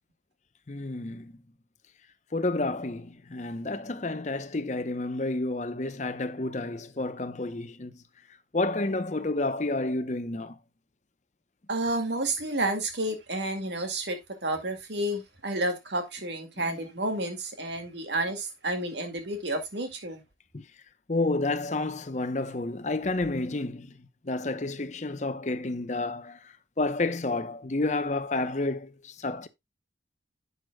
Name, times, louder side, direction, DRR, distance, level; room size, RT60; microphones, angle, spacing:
voice 1, 0.7-1.3 2.3-7.9 8.5-10.5 16.6-16.8 20.5-20.6 21.1-23.9 24.2-26.4 26.8-29.5, left 2 dB, 40° left, 0.7 m, -30 dB
voice 2, 11.7-20.2, right 1 dB, 65° right, 2.2 m, -30 dB
11.0 x 8.0 x 2.2 m
head